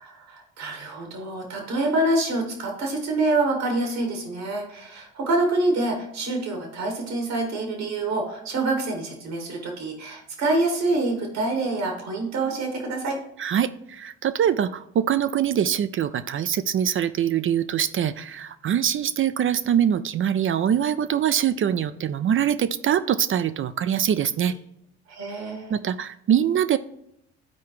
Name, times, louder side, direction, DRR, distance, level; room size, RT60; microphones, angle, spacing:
voice 1, 0.0-13.2 25.1-25.7, right 2 dB, 75° right, 1 dB, 2.0 m, -26 dB
voice 2, 13.4-24.6 25.7-26.8, right 9 dB, 35° right, 12 dB, 0.4 m, -23 dB
12.0 x 4.6 x 3.1 m, 0.77 s
hypercardioid pair, 50°, 35 cm